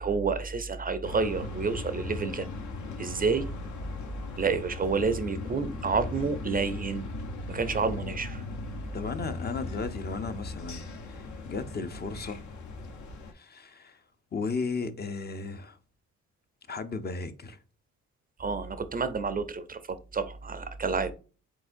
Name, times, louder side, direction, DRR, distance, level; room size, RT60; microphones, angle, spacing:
voice 1, 0.0-2.5 3.0-3.5 4.4-7.0 7.5-8.4 18.4-21.1, right 4 dB, 30° right, 0.5 m, -29 dB
sound 1, 1.0-13.3, left 2 dB, 70° left, 1.0 m, -38 dB
voice 2, 8.9-12.4 13.3-14.0 14.3-15.8 16.7-17.6, left 4 dB, 35° left, 0.6 m, -35 dB
4.6 x 3.7 x 2.5 m
cardioid pair, 90°, 30 cm